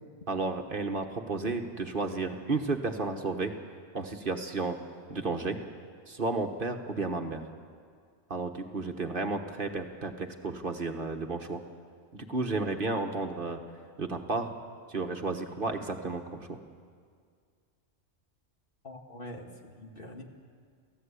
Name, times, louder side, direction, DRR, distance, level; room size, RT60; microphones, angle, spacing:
voice 1, 0.3-3.5 3.9-4.8 5.1-5.6 6.1-7.5 8.3-11.6 12.1-13.6 14.0-14.5 14.9-16.6, right 3 dB, 50° right, 5 dB, 1.5 m, -32 dB
voice 2, 18.8-20.2, left 1 dB, 50° left, 2 dB, 2.2 m, -44 dB
29.5 x 15.0 x 8.4 m, 2.1 s
omnidirectional pair, 1.2 m